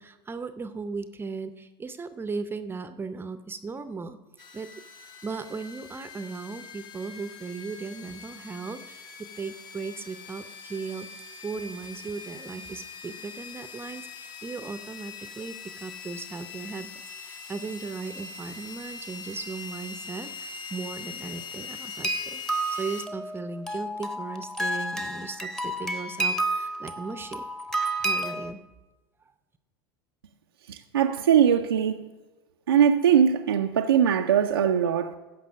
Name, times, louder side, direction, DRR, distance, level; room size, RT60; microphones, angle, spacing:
voice 1, 0.0-4.2 4.5-4.7 5.2-9.1 9.4-11.1 11.4-16.9 17.2-27.5 28.0-28.6, right 4 dB, 20° right, 0.6 m, -37 dB
sound 1, 4.4-23.1, left 5 dB, 35° left, 1.0 m, -42 dB
sound 2, 22.0-28.5, right 2 dB, 5° left, 0.9 m, -30 dB
voice 2, 30.7-32.1 32.7-35.2, right 8 dB, 90° right, 0.5 m, -21 dB
15.0 x 5.5 x 5.3 m
hypercardioid pair, 90°, 12 cm